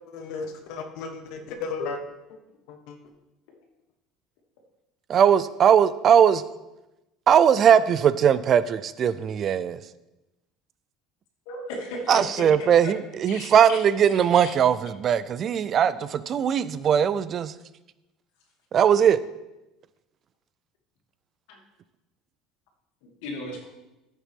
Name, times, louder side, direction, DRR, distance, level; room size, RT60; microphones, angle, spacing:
voice 1, 0.1-2.0 2.3-2.4 2.7-3.0, left 4 dB, 55° left, 4 dB, 1.3 m, -34 dB
voice 2, 5.1-6.4 7.3-9.8 12.1-17.5 18.7-19.2, right 8 dB, 30° right, 15 dB, 0.3 m, -20 dB
voice 3, 11.5-13.0 13.3-13.8 14.4-14.5 21.5-21.6 23.0-23.7, left 2 dB, 70° left, 0 dB, 2.6 m, -36 dB
14.0 x 7.3 x 3.6 m, 0.97 s
cardioid pair, 175°, 0 cm